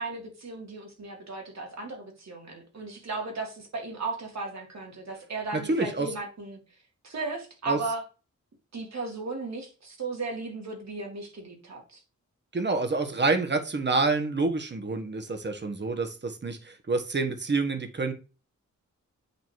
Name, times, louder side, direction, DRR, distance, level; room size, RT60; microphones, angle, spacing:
voice 1, 0.0-6.6 7.0-8.0 8.7-12.0, right 3 dB, 65° right, 2 dB, 2.2 m, -36 dB
voice 2, 5.7-6.1 7.7-7.8 12.5-18.1, right 3 dB, 35° right, 6 dB, 1.3 m, -27 dB
8.1 x 2.9 x 4.6 m, 0.32 s
cardioid pair, 80°, 30 cm